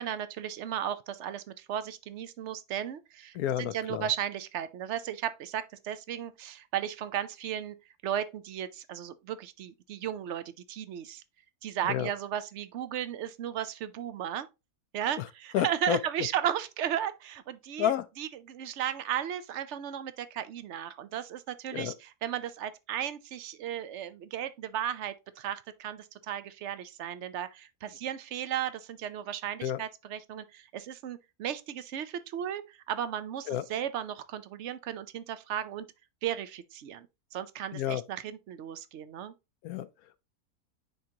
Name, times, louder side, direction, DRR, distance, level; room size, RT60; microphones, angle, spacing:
voice 1, 0.0-7.8 8.0-11.2 11.6-14.5 14.9-17.9 18.2-21.9 22.2-35.9 36.2-37.1 37.3-39.3, right 10 dB, 60° right, 0.8 m, -35 dB
voice 2, 3.3-4.1 11.8-12.1 15.2-15.3 15.5-16.0 17.8-18.1 21.7-21.9 29.6-29.8 33.5-33.7 37.7-38.0 39.6-40.2, left 10 dB, 75° left, 1.0 m, -30 dB
9.4 x 3.7 x 2.8 m
omnidirectional pair, 1.6 m